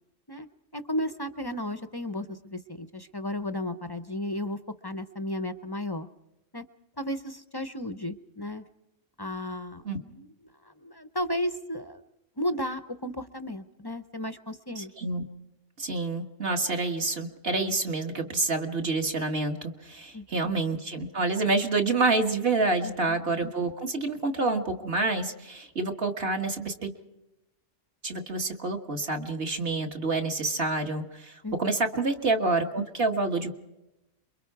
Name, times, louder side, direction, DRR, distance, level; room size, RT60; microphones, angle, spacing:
voice 1, 0.7-6.1 6.5-6.6 7.0-8.6 9.2-10.3 10.6-12.0 12.4-14.9 20.1-20.5 22.8-23.2 31.4-31.6, left 1 dB, 25° left, 11 dB, 0.5 m, -34 dB
voice 2, 14.8-15.2 15.8-26.9 28.0-33.5, right 3 dB, 50° right, 3 dB, 1.8 m, -28 dB
27.5 x 23.0 x 4.7 m, 0.94 s
omnidirectional pair, 1.3 m